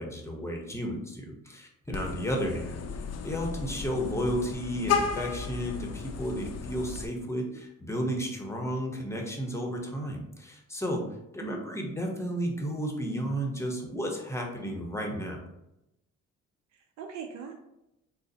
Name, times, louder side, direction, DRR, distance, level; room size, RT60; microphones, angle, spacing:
voice 1, 0.0-2.8 3.2-11.0 11.3-15.4, equal, 10° left, 0 dB, 0.8 m, -33 dB
Vehicle horn car horn honking, 1.9-7.1, left 6 dB, 60° left, 0.5 m, -34 dB
voice 2, 11.4-11.8 16.7-17.5, right 6 dB, 65° right, 3 dB, 0.5 m, -41 dB
3.8 x 2.0 x 3.9 m, 0.88 s
cardioid pair, 90°, 30 cm